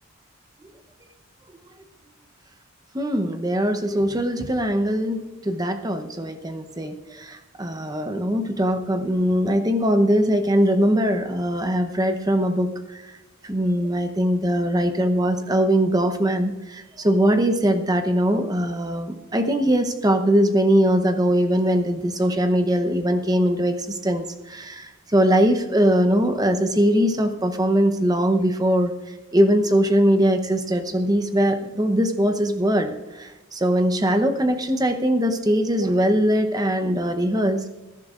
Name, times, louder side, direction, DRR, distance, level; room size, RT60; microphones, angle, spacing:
voice 1, 2.9-13.1 13.4-37.6, equal, 15° right, 7 dB, 0.8 m, -21 dB
21.0 x 11.5 x 2.5 m, 1.1 s
head